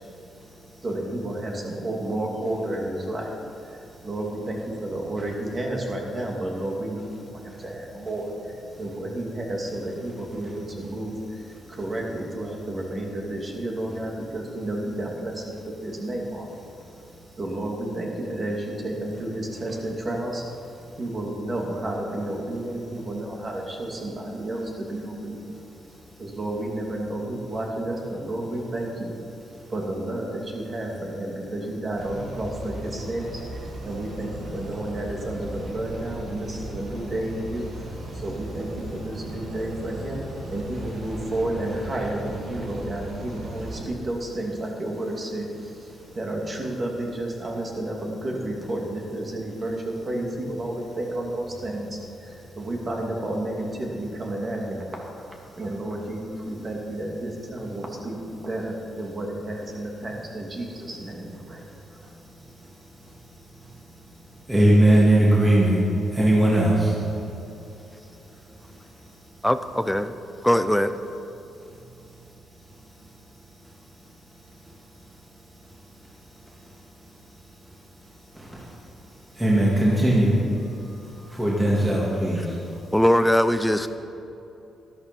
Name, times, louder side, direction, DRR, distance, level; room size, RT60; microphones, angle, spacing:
voice 1, 0.8-3.3 3.7-16.6 17.4-20.4 21.0-25.5 26.2-29.1 29.7-62.0, right 1 dB, 35° right, 0 dB, 2.6 m, -31 dB
sound 1, 32.0-43.9, right 1 dB, 60° right, 2.2 m, -37 dB
voice 2, 64.5-65.8 66.2-66.9 79.4-80.4 81.4-82.4, right 1 dB, 10° right, -6 dB, 2.7 m, -18 dB
voice 3, 69.4-70.1 70.4-70.9 82.9-83.9, equal, 5° left, 11 dB, 0.6 m, -20 dB
13.0 x 12.5 x 5.4 m, 2.9 s
cardioid pair, 105°, 0 cm